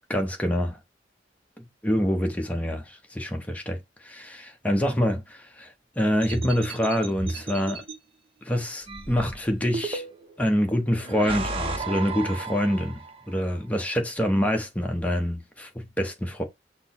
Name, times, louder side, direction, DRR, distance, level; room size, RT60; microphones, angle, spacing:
voice 1, 0.1-0.8 1.8-3.8 4.0-7.8 8.4-10.0 10.4-13.0 13.3-16.4, equal, 10° left, 0.7 m, -26 dB
sound 1, 6.2-7.9 8.9-10.4 11.0-13.2, right 3 dB, 30° right, 0.7 m, -33 dB
5.9 x 2.0 x 4.2 m
head